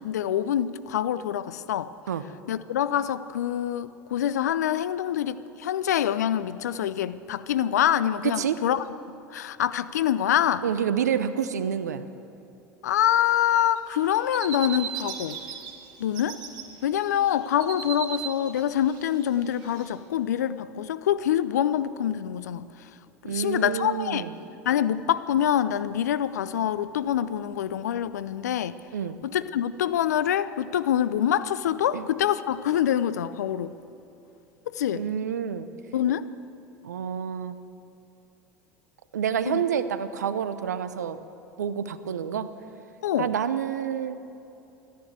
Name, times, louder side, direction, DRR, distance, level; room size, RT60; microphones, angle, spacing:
voice 1, 0.0-1.9 2.5-8.9 9.3-10.6 12.8-15.4 16.0-16.4 16.8-22.6 23.2-24.3 24.7-28.8 29.2-33.7 34.7-35.1 35.9-36.3 39.5-39.6 43.0-43.3, left 10 dB, 80° left, 15 dB, 0.5 m, -25 dB
voice 2, 8.2-8.6 10.6-12.0 23.2-24.3 28.9-29.2 31.9-32.1 34.9-35.7 36.8-37.6 39.1-41.2 41.6-42.5 43.2-44.2, right 8 dB, 85° right, 12 dB, 0.7 m, -28 dB
sound 1, 13.8-15.7 16.0-16.6 17.0-19.9, right 9 dB, 55° right, 1.9 m, -37 dB
13.5 x 10.5 x 8.1 m, 2.8 s
hypercardioid pair, 80°, 9 cm